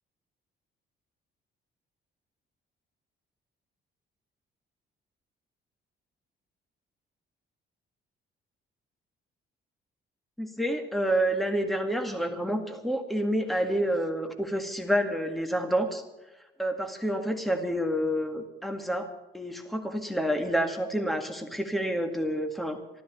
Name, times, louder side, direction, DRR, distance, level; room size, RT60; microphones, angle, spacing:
voice 1, 10.4-16.0 16.6-19.1 19.3-22.8, equal, ahead, 5 dB, 2.0 m, -28 dB
13.0 x 12.5 x 7.2 m, 1.0 s
cardioid pair, 90°, 20 cm